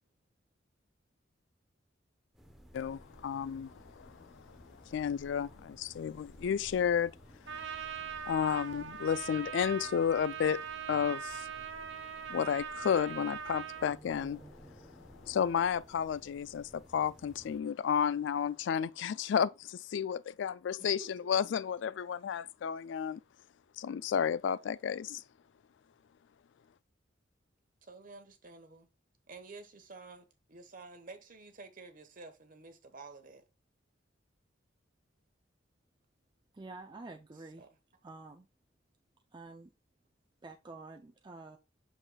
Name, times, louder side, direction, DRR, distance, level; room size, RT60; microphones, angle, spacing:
sound 1, 2.3-17.6, equal, ahead, 1.0 m, -56 dB
voice 1, 2.7-4.6 4.9-7.1 8.3-11.5 12.3-14.4 15.2-23.2 23.8-25.2, left 7 dB, 70° left, 0.3 m, -32 dB
Trumpet, 7.5-14.0, right 8 dB, 75° right, 0.9 m, -41 dB
voice 2, 20.8-21.3 27.8-28.9 29.3-33.4 37.6-37.7, right 3 dB, 45° right, 1.2 m, -51 dB
voice 3, 36.5-37.7 38.0-38.5 39.3-39.7 40.4-41.6, right 3 dB, 25° right, 0.5 m, -48 dB
7.6 x 6.4 x 2.3 m
head